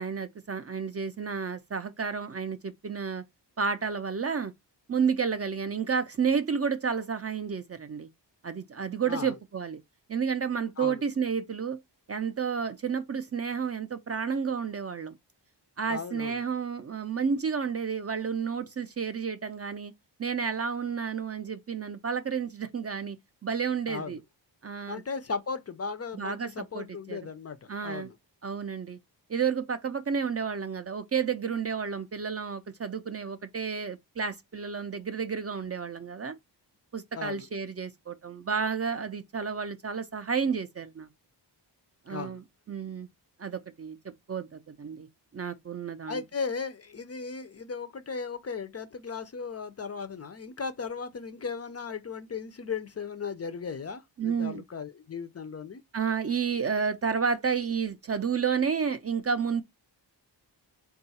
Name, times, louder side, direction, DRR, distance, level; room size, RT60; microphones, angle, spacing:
voice 1, 0.0-3.2 3.6-4.5 4.9-8.1 8.4-9.8 10.1-11.8 12.1-15.2 15.8-19.9 20.2-24.2 24.6-25.0 26.1-27.2 27.7-28.1 28.4-29.0 29.3-36.4 36.9-41.1 42.1-43.1 43.4-45.1 45.3-46.2 54.2-54.6 55.9-59.6, right 6 dB, 35° right, 0.4 m, -31 dB
voice 2, 15.9-16.4 23.9-24.2 24.9-28.2 37.1-37.5 42.1-42.4 46.1-55.8, left 5 dB, 35° left, 0.4 m, -36 dB
3.7 x 2.3 x 4.0 m
wide cardioid pair, 130°, 43 cm